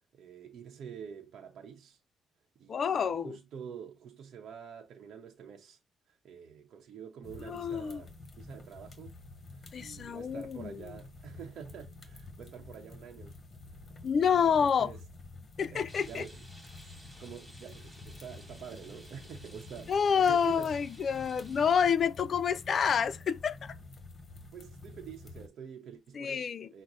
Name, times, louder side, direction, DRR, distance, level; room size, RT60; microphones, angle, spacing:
voice 1, 0.1-2.0 2.6-5.8 6.1-9.2 9.5-13.3 14.1-15.0 15.7-16.4 17.2-20.8 24.5-26.8, right 8 dB, 70° right, 0.8 m, -47 dB
voice 2, 2.7-3.4 7.5-8.0 9.7-10.8 14.0-14.9 15.6-16.2 19.9-23.7 26.2-26.7, left 7 dB, 50° left, 0.4 m, -28 dB
sound 1, 7.2-25.5, left 3 dB, 35° left, 1.1 m, -49 dB
Rain, 15.9-21.9, equal, 5° right, 2.3 m, -54 dB
6.0 x 2.1 x 4.0 m
cardioid pair, 90°, 0 cm